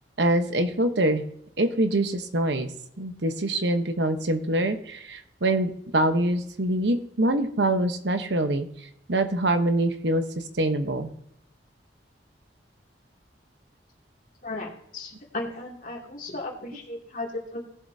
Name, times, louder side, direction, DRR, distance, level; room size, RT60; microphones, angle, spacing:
voice 1, 0.2-1.3 1.6-2.7 3.0-8.7 9.1-11.1, right 1 dB, 70° right, 8 dB, 1.0 m, -24 dB
voice 2, 14.4-17.6, left 2 dB, 50° left, -1 dB, 2.6 m, -35 dB
18.5 x 7.3 x 2.8 m, 0.73 s
head